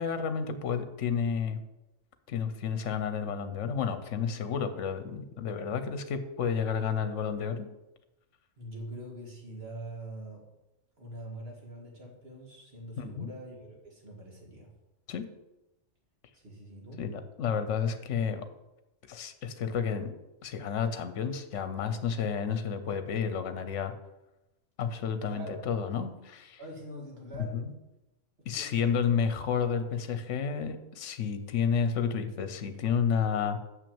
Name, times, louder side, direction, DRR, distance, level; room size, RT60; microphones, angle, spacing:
voice 1, 0.0-1.6 2.3-7.7 13.0-13.3 15.1-15.3 17.0-18.5 19.1-20.1 20.4-23.9 24.8-26.6 27.3-27.7 28.5-33.6, left 6 dB, 70° left, 10 dB, 1.1 m, -31 dB
voice 2, 8.6-10.4 11.0-14.7 16.3-17.0 25.2-25.6 26.6-27.7 28.4-28.8, right 1 dB, 50° right, -1 dB, 2.3 m, -44 dB
6.6 x 6.2 x 7.0 m, 0.98 s
omnidirectional pair, 1.3 m